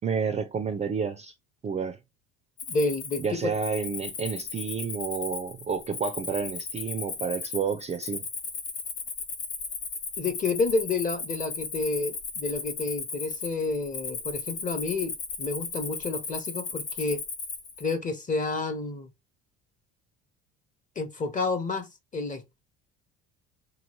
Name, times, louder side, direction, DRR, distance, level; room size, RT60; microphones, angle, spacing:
voice 1, 0.0-1.3 1.6-2.0 3.2-8.3, right 6 dB, 25° right, 0.4 m, -30 dB
Cricket, 2.6-17.9, left 5 dB, 85° left, 0.9 m, -36 dB
voice 2, 2.7-3.5 10.2-17.2 17.8-19.1 21.0-22.6, left 3 dB, 25° left, 0.8 m, -30 dB
3.0 x 2.3 x 3.0 m
supercardioid pair, 85°, 29 cm